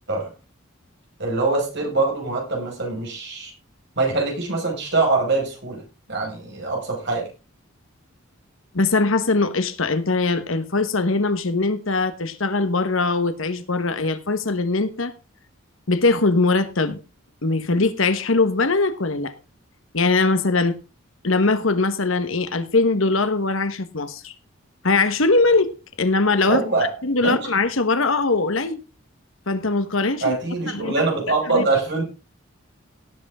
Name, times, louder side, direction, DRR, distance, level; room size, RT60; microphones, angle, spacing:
voice 1, 1.2-3.5 4.0-5.8 6.1-7.3 26.5-26.9 27.2-27.4 30.2-32.0, right 3 dB, 55° right, 5.3 m, -23 dB
voice 2, 8.7-15.1 15.9-17.0 17.4-19.3 19.9-20.8 21.2-24.3 24.8-25.7 26.0-26.6 27.0-28.8 29.5-30.4 30.7-30.9 31.5-31.6, left 3 dB, 70° left, 1.3 m, -21 dB
17.5 x 7.9 x 3.7 m
head